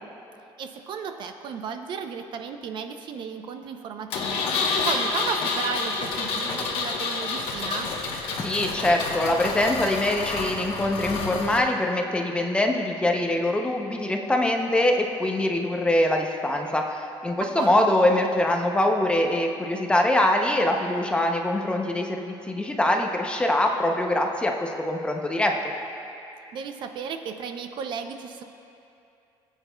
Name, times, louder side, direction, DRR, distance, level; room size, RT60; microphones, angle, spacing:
voice 1, 0.6-7.9 17.4-17.9 26.5-28.4, right 6 dB, 55° right, 6 dB, 0.5 m, -34 dB
Engine, 4.1-11.6, left 4 dB, 75° left, 1.0 m, -29 dB
voice 2, 8.4-25.5, left 1 dB, 10° left, 2 dB, 0.6 m, -23 dB
18.5 x 8.0 x 2.2 m, 2.7 s
cardioid pair, 155°, 10 cm